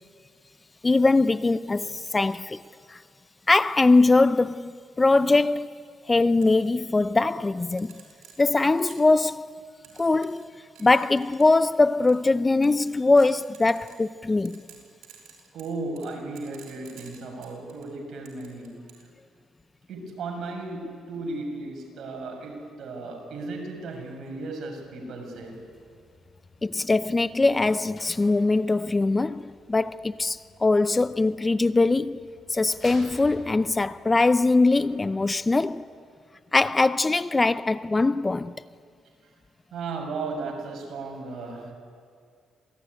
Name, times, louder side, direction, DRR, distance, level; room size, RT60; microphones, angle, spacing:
voice 1, 0.8-2.6 2.9-3.0 3.5-4.7 5.0-5.7 6.1-7.9 8.4-9.5 10.0-10.5 10.8-14.6 26.6-32.2 32.5-35.8 36.5-38.5, left 3 dB, 20° left, 0.5 m, -22 dB
sound 1, 6.4-6.5 7.8-9.2 9.8-10.5 10.8-11.6 12.1-12.3 12.6-14.1 14.4-17.9 18.3-19.1, right 9 dB, 85° right, 5.6 m, -50 dB
voice 2, 15.5-18.8 19.9-25.6 36.6-36.7 39.7-41.7, right 3 dB, 65° right, 6.7 m, -35 dB
sound 2, 25.3-36.0, left 3 dB, 45° left, 6.2 m, -51 dB
26.5 x 18.0 x 9.9 m
cardioid pair, 90°, 0 cm